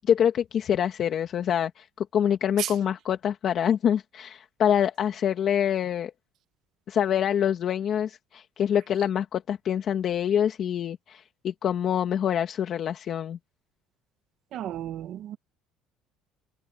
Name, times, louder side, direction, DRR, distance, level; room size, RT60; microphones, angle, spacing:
voice 1, 0.1-6.1 6.9-13.4, left 9 dB, 40° left, 1.9 m, -26 dB
voice 2, 14.5-15.4, right 12 dB, 50° right, 1.8 m, -33 dB
cardioid pair, 150°, 0 cm